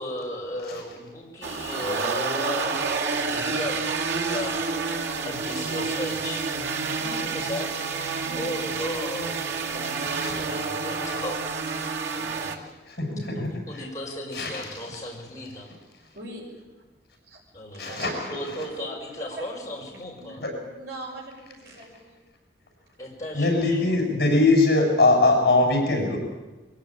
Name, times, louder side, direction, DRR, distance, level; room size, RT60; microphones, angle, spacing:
voice 1, 0.0-2.8 3.3-3.9 4.2-4.6 5.3-6.5 7.3-7.7 8.4-11.8 12.1-12.7 13.3-15.7 17.5-18.0 18.3-20.4 23.0-23.9, left 1 dB, 20° left, -3 dB, 5.3 m, -36 dB
sound 1, 1.4-12.6, right 4 dB, 80° right, 2.1 m, -29 dB
voice 2, 2.8-4.0 6.8-7.3 8.2-8.8 16.0-16.5 17.3-17.4 17.7-18.3 18.8-18.9 19.3-19.5 20.2-20.4 20.7-22.2, right 2 dB, 65° right, -4 dB, 6.3 m, -40 dB
voice 3, 12.9-13.5 14.3-14.6 17.8-18.1 20.4-20.5 23.3-26.2, left 2 dB, 55° left, 2 dB, 7.4 m, -21 dB
23.0 x 16.0 x 8.9 m, 1.2 s
head